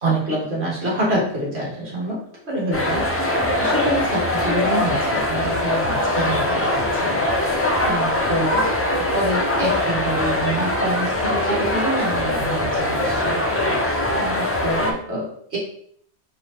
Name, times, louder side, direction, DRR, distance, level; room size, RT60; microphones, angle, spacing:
voice 1, 0.0-13.4 14.2-15.6, right 1 dB, 65° right, -5 dB, 1.7 m, -27 dB
sound 1, 2.7-14.9, left 1 dB, 25° left, 0.3 m, -22 dB
4.2 x 3.5 x 2.9 m, 0.64 s
omnidirectional pair, 1.2 m